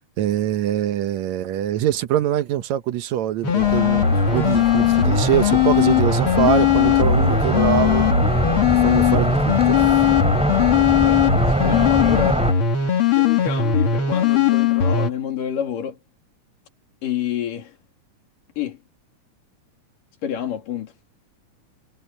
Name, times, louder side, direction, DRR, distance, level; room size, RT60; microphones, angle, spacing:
voice 1, 0.2-8.1 8.7-9.8, right 12 dB, 70° right, 2.0 m, -23 dB
sound 1, 3.4-15.1, left 8 dB, 45° left, 2.7 m, -18 dB
sound 2, 3.6-12.5, equal, ahead, 5.0 m, -24 dB
voice 2, 11.6-12.5 13.1-16.0 17.0-17.8 18.6-18.8 20.2-20.9, left 9 dB, 75° left, 4.4 m, -28 dB
omnidirectional pair, 3.8 m